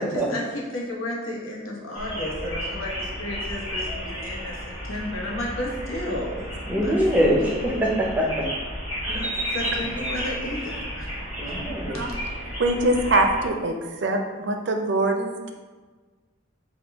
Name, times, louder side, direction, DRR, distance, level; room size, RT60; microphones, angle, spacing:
voice 1, 0.0-7.0 7.5-7.6 9.1-11.1 11.9-12.2, left 1 dB, 90° left, -3 dB, 0.9 m, -33 dB
sound 1, 1.9-13.5, equal, 25° left, 1.3 m, -33 dB
voice 2, 6.7-8.5 9.0-10.1 11.4-12.1, equal, 10° right, -2 dB, 0.5 m, -24 dB
voice 3, 12.6-15.5, right 2 dB, 60° right, 4 dB, 0.4 m, -23 dB
4.9 x 2.2 x 3.4 m, 1.4 s
head